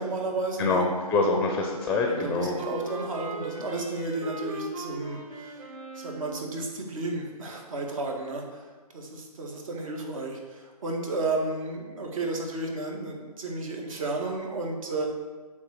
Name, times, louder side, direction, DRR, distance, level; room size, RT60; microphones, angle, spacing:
voice 1, 0.0-0.8 2.1-8.6 8.9-15.1, right 2 dB, 55° right, 1 dB, 1.8 m, -33 dB
voice 2, 0.6-2.6, left 3 dB, 5° left, 1 dB, 0.6 m, -25 dB
Wind instrument woodwind instrument, 1.8-6.5, right 3 dB, 20° right, 1.3 m, -39 dB
8.9 x 3.9 x 6.5 m, 1.4 s
hypercardioid pair, 145°, 20 cm